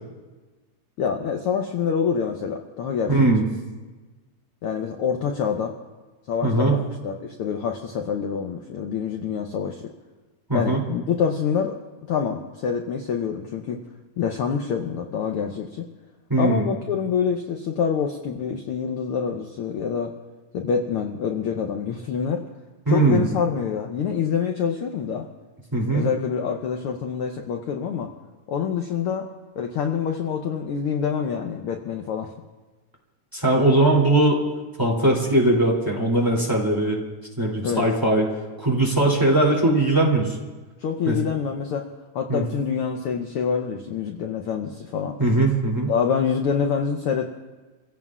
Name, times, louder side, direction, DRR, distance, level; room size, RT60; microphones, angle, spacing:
voice 1, 1.0-3.3 4.6-5.7 6.3-9.8 10.5-11.8 12.1-13.8 14.2-15.9 16.4-20.1 20.5-22.4 22.9-25.3 25.9-28.1 28.5-29.3 29.6-32.3 37.6-37.9 40.8-41.9 42.1-45.2 45.9-47.3, left 7 dB, 75° left, 3 dB, 1.3 m, -26 dB
voice 2, 3.1-3.4 6.4-6.8 10.5-10.8 16.3-16.6 22.9-23.2 25.7-26.0 33.3-34.4 34.8-37.0 37.4-38.3 38.6-40.3 41.0-41.2 42.3-42.4 45.2-45.9, right 2 dB, 5° right, -2 dB, 2.4 m, -20 dB
29.5 x 16.5 x 2.4 m, 1.3 s
omnidirectional pair, 3.4 m